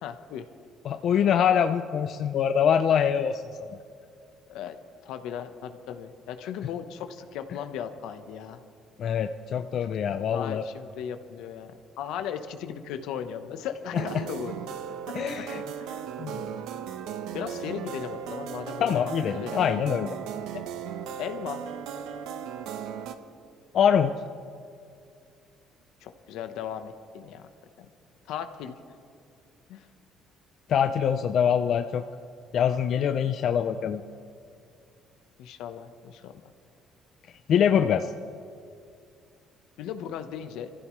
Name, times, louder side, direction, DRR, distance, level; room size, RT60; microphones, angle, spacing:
voice 1, 0.0-0.5 4.5-4.8 5.0-8.6 9.9-10.0 10.3-11.7 12.0-14.6 15.1-15.4 15.8-16.7 17.3-19.0 19.3-19.7 21.2-21.6 26.0-27.5 27.8-27.9 28.3-28.8 29.7-29.9 35.4-36.3 39.8-40.7, left 8 dB, 80° left, 8 dB, 1.0 m, -37 dB
voice 2, 0.8-3.4 9.0-10.6 13.9-14.2 15.1-15.6 16.2-16.4 18.8-20.1 23.7-24.1 30.7-32.0 32.5-34.0 37.5-38.1, left 8 dB, 50° left, 8 dB, 0.5 m, -24 dB
sound 1, 13.9-23.2, right 8 dB, 90° right, 0.9 m, -36 dB
26.5 x 15.0 x 3.2 m, 2.4 s
cardioid pair, 155°, 0 cm